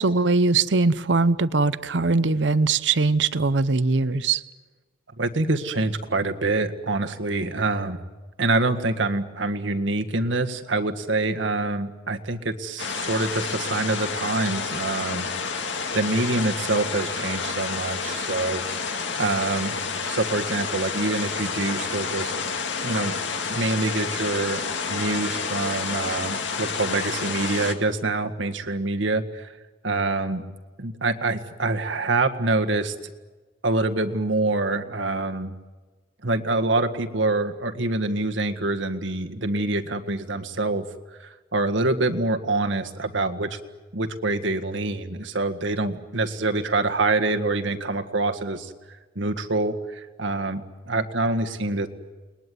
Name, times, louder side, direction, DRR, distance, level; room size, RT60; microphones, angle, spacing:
voice 1, 0.0-4.4, right 3 dB, 70° right, 15 dB, 0.8 m, -21 dB
voice 2, 5.2-8.0 8.4-15.3 15.9-18.6 19.2-19.7 20.0-22.3 22.8-23.1 23.5-29.5 29.8-30.4 30.8-32.9 33.6-35.5 36.2-40.9 41.2-43.6 43.9-48.7 49.2-51.9, right 2 dB, 90° right, 6 dB, 1.8 m, -25 dB
sound 1, 12.8-27.7, left 5 dB, 75° left, 2.2 m, -29 dB
30.0 x 21.0 x 9.5 m, 1.3 s
head